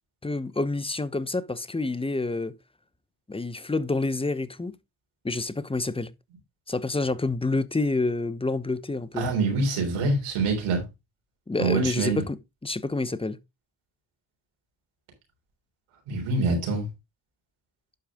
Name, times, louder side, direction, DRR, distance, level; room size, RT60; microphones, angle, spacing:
voice 1, 0.2-2.5 3.3-4.7 5.2-6.1 6.7-9.3 11.5-12.4 12.6-13.4, left 3 dB, 10° left, 0.9 m, -28 dB
voice 2, 9.2-10.8 11.6-12.2 16.1-16.9, right 3 dB, 90° right, 3.7 m, -25 dB
11.5 x 5.0 x 3.7 m
supercardioid pair, 45°, 49 cm